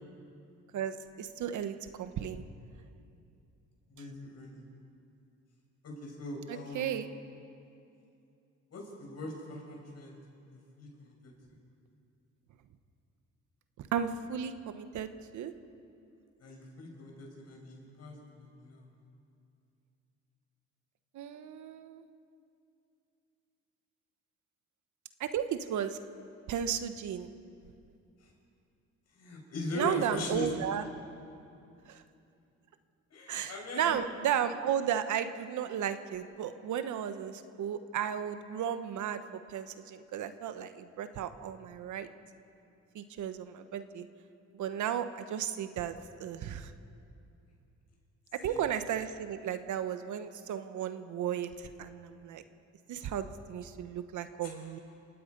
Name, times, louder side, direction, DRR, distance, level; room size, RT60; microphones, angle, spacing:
voice 1, 0.7-2.4 6.5-7.1 13.8-15.5 21.1-22.0 25.2-26.0 26.5-27.3 29.7-30.8 31.9-32.0 33.3-39.2 39.5-42.1 42.9-44.1 44.5-46.7 48.3-52.4 52.9-54.8, right 9 dB, 75° right, 10 dB, 1.2 m, -34 dB
voice 2, 3.9-4.7 5.8-7.0 8.7-10.2 10.5-11.3 16.4-18.9 28.2-28.3 29.1-30.5 33.1-34.0 48.4-48.6 54.4-54.5, left 2 dB, 55° left, 0 dB, 6.0 m, -41 dB
27.5 x 18.0 x 5.4 m, 2.6 s
cardioid pair, 90°, 30 cm